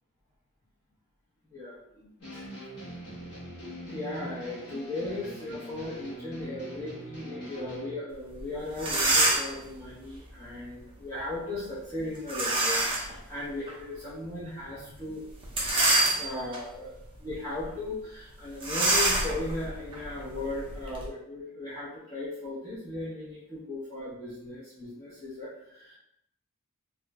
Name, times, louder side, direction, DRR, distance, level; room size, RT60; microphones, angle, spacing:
voice 1, 1.5-2.5 3.9-15.2 15.7-26.0, left 2 dB, 15° left, -11 dB, 0.7 m, -37 dB
sound 1, 2.2-7.9, equal, 55° left, 1.1 m, -42 dB
sound 2, 8.4-8.5 8.7-9.6 12.3-13.1 13.7-13.8 15.4-16.6 17.1-17.3 17.6-17.7 18.6-21.1, right 2 dB, 25° right, 0.5 m, -26 dB
2.5 x 2.0 x 3.3 m, 0.82 s
head